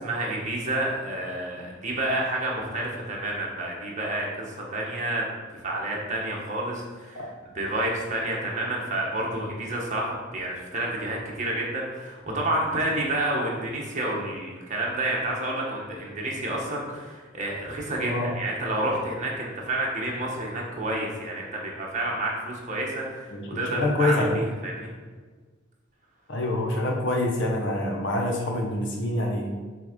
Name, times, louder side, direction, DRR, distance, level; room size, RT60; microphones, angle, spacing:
voice 1, 0.0-23.3 23.5-24.9, right 1 dB, 40° right, -2 dB, 1.4 m, -29 dB
voice 2, 23.3-24.3 26.3-29.5, left 1 dB, 65° left, 1 dB, 1.1 m, -26 dB
6.7 x 3.5 x 5.2 m, 1.4 s
head